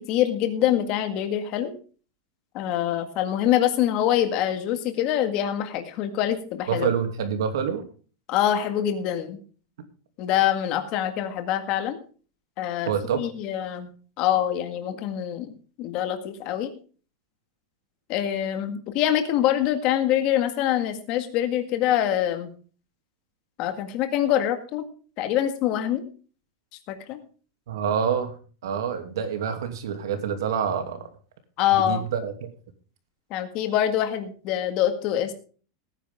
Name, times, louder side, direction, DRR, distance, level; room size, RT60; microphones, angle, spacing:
voice 1, 0.0-1.7 2.5-6.9 8.3-9.4 10.2-12.0 12.6-13.9 14.2-15.5 15.8-16.7 18.1-22.5 23.6-24.8 25.2-26.0 26.9-27.2 31.6-32.1 33.3-35.3, left 11 dB, 35° left, 8 dB, 1.8 m, -25 dB
voice 2, 6.7-7.8 12.9-13.2 27.7-28.3 28.6-31.0 31.7-32.5, right 7 dB, 85° right, 7 dB, 2.7 m, -27 dB
18.0 x 10.0 x 3.7 m, 0.39 s
supercardioid pair, 175°, 2 cm